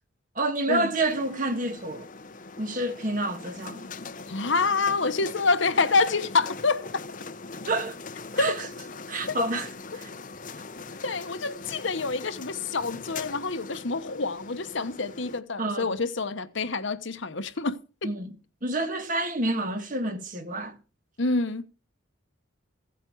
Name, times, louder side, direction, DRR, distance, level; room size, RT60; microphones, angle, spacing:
voice 1, 0.4-2.1 2.6-3.9 7.7-8.0 8.4-8.7 9.1-10.1 10.5-10.6 15.6-15.9 18.0-18.3 18.6-20.8, right 2 dB, 40° right, 1.7 m, -29 dB
sound 1, 0.9-15.4, left 4 dB, 40° left, 0.8 m, -41 dB
voice 2, 4.3-7.0 8.4-8.6 9.3-9.4 11.0-18.1 21.2-21.7, left 4 dB, 65° left, 1.1 m, -27 dB
16.0 x 8.4 x 4.7 m
head